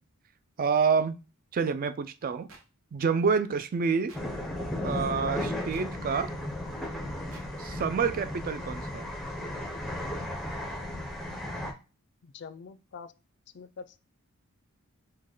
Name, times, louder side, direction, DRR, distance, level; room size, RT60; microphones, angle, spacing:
voice 1, 0.6-1.2 1.5-2.5 2.9-4.1 4.8-6.3 7.6-9.1, right 5 dB, 40° right, 0.3 m, -28 dB
sound 1, 2.5-2.6 4.1-4.2 5.7-5.9 7.3-7.5, right 4 dB, 60° right, 0.9 m, -50 dB
sound 2, 4.1-11.7, left 1 dB, ahead, 0.6 m, -35 dB
voice 2, 12.2-13.1 13.5-14.0, left 5 dB, 50° left, 0.4 m, -44 dB
5.2 x 2.1 x 3.8 m
head